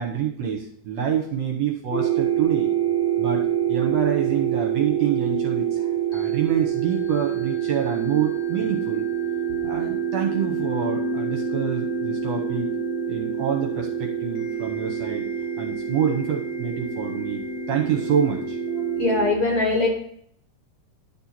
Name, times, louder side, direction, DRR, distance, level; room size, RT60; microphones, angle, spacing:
voice 1, 0.0-2.7 3.2-5.9 6.1-9.1 9.6-12.7 13.1-15.2 15.6-17.4 17.7-18.6, right 8 dB, 65° right, 0 dB, 1.9 m, -27 dB
sound 1, 1.9-19.3, right 8 dB, 65° left, 2.0 m, -26 dB
voice 2, 19.0-19.9, left 3 dB, 50° left, -1 dB, 2.1 m, -21 dB
11.5 x 4.4 x 4.3 m, 0.66 s
omnidirectional pair, 3.8 m